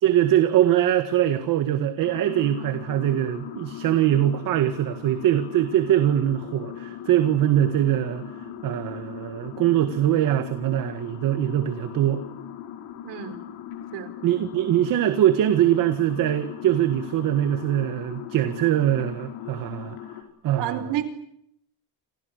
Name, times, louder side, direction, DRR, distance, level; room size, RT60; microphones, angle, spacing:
voice 1, 0.0-8.2 8.6-12.3 14.2-20.0 20.4-20.8, right 12 dB, 50° right, 9 dB, 1.8 m, -22 dB
sound 1, 2.0-20.2, left 10 dB, 75° left, 5.7 m, -39 dB
voice 2, 13.0-13.4 13.9-14.1 20.6-21.0, right 11 dB, 65° right, 11 dB, 4.5 m, -29 dB
29.5 x 28.0 x 6.7 m, 0.73 s
cardioid pair, 180°, 44 cm